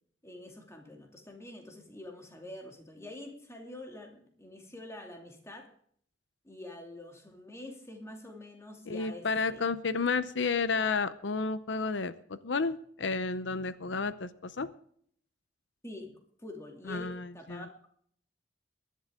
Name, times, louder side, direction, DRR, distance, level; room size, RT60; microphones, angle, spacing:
voice 1, 0.2-5.7 6.4-9.6 15.8-17.7, left 1 dB, 15° left, 2 dB, 2.6 m, -46 dB
voice 2, 8.9-14.7 16.9-17.7, left 4 dB, 90° left, 14 dB, 0.7 m, -31 dB
22.5 x 11.0 x 3.7 m, 0.63 s
head